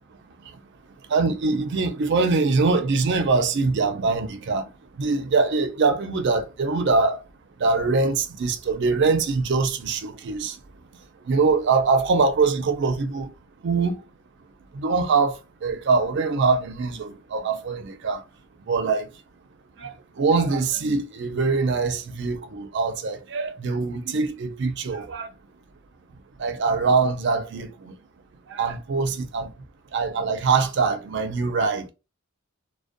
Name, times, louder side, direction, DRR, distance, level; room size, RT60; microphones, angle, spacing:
voice 1, 1.1-4.6 5.0-7.2 7.6-10.5 11.3-13.3 13.6-14.0 14.8-15.3 15.6-18.2 18.7-19.0 19.8-19.9 20.2-25.3 26.4-27.7 28.6-29.5 29.9-31.9, right 4 dB, 55° right, 0.4 m, -23 dB
2.4 x 2.1 x 2.5 m
head